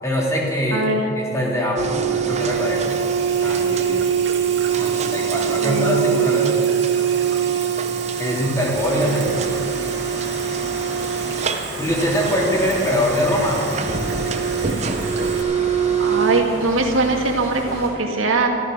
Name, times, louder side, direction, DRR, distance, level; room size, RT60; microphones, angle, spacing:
voice 1, 0.0-0.8 1.1-2.9 3.4-4.1 4.8-6.6 8.2-9.6 11.8-13.7, equal, 15° left, -4 dB, 3.3 m, -23 dB
voice 2, 0.7-1.1 5.6-6.0 16.0-18.5, right 2 dB, 85° right, 3 dB, 2.1 m, -21 dB
sound 1, 1.8-16.4, right 7 dB, 35° right, 0.8 m, -23 dB
Water tap faucet / Sink (filling or washing), 1.8-15.4, right 5 dB, 65° right, 2.5 m, -35 dB
sound 2, 8.7-17.9, equal, 40° left, 5.0 m, -34 dB
14.0 x 14.0 x 6.6 m, 2.5 s
head